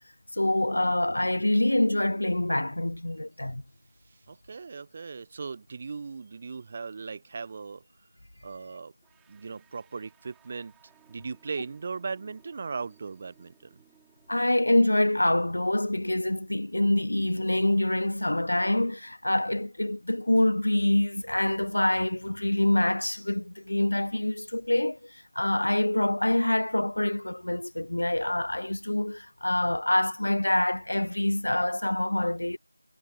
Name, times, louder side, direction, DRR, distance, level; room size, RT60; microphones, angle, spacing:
voice 1, 0.4-3.6 14.3-32.6, left 1 dB, 60° left, 0.3 m, -26 dB
voice 2, 4.3-7.8 8.4-8.9 9.3-10.7 11.1-13.8, right 4 dB, 20° right, 0.5 m, -38 dB
sound 1, 9.0-19.9, right 15 dB, 5° right, 2.8 m, -65 dB
figure-of-eight pair, 170°, 0 cm